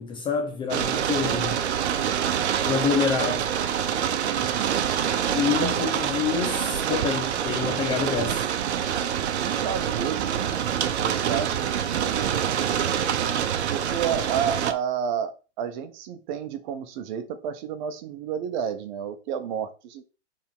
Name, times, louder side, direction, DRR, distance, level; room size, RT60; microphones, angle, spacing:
voice 1, 0.0-1.6 2.6-3.5 5.3-8.5, left 6 dB, 15° left, 0.5 m, -27 dB
sound 1, 0.7-14.7, right 9 dB, 65° right, 0.9 m, -26 dB
voice 2, 4.3-4.9 5.6-5.7 9.3-10.6 11.0-12.6 13.7-20.0, right 8 dB, 40° right, 1.0 m, -31 dB
7.0 x 3.7 x 3.6 m
hypercardioid pair, 125°, 35 cm